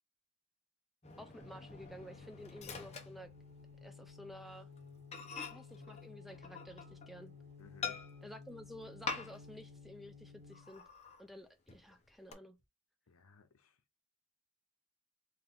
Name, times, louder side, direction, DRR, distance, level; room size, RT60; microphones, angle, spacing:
Microwave oven, 1.0-3.9 4.2-4.4 4.8-4.9 5.1-7.2 7.8-8.4 9.0-9.6 9.9-10.0 10.5-11.2 11.7-12.3, left 5 dB, 30° left, 0.8 m, -45 dB
voice 1, 1.2-3.3 3.8-4.7 5.5-7.3 8.2-10.8 11.2-12.6, equal, ahead, 0.4 m, -52 dB
sound 1, 1.4-10.8, left 5 dB, 55° right, 1.3 m, -55 dB
voice 2, 7.6-8.0 13.1-13.7, left 5 dB, 90° left, 0.7 m, -60 dB
4.4 x 2.6 x 3.6 m
head